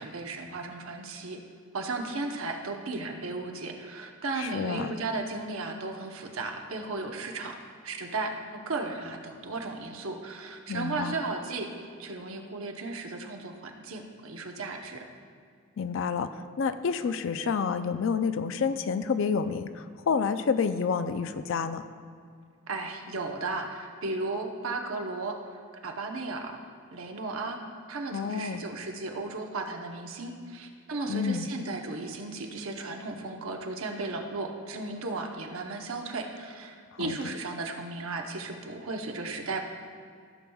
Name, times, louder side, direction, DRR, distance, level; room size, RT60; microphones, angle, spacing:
voice 1, 0.0-1.4 1.7-7.6 7.8-11.7 12.0-15.0 22.7-26.6 26.9-27.6 27.9-39.6, right 3 dB, 65° right, 3 dB, 0.9 m, -35 dB
voice 2, 4.4-4.9 10.7-11.1 15.8-21.8 28.1-28.6 31.1-31.5 36.9-37.3, left 5 dB, 55° left, 11 dB, 0.4 m, -29 dB
14.5 x 6.9 x 2.3 m, 2.2 s
head